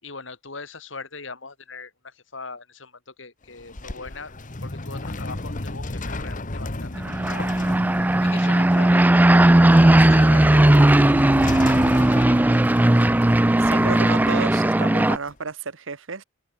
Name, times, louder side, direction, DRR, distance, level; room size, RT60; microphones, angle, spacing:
voice 1, 0.0-4.3 4.6-7.6 7.9-11.2 11.6-12.6, left 4 dB, 70° left, 3.9 m, -40 dB
sound 1, 3.4-15.3, left 2 dB, 45° left, 1.5 m, -34 dB
sound 2, 6.9-15.2, right 1 dB, 10° right, 0.4 m, -17 dB
voice 2, 13.6-16.2, right 4 dB, 80° right, 1.2 m, -32 dB
open air
head